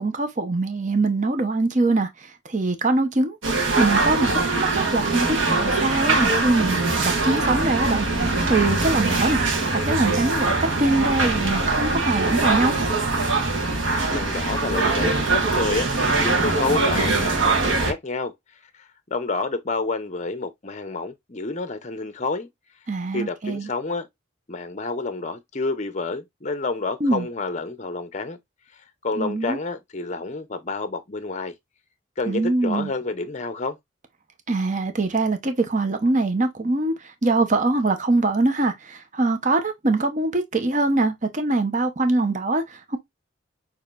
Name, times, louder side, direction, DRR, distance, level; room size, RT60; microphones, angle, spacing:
voice 1, 0.0-3.4 3.8-9.4 9.7-12.7 22.9-23.7 27.0-27.3 29.2-29.6 32.3-32.9 34.5-43.0, right 2 dB, 40° right, 0.8 m, -23 dB
sound 1, 3.4-17.9, right 3 dB, 75° right, 1.4 m, -22 dB
voice 2, 14.1-18.3 18.7-22.5 23.1-24.1 24.5-28.4 29.0-31.5 32.2-33.8, left 3 dB, 35° left, 0.6 m, -29 dB
6.3 x 3.0 x 2.5 m
head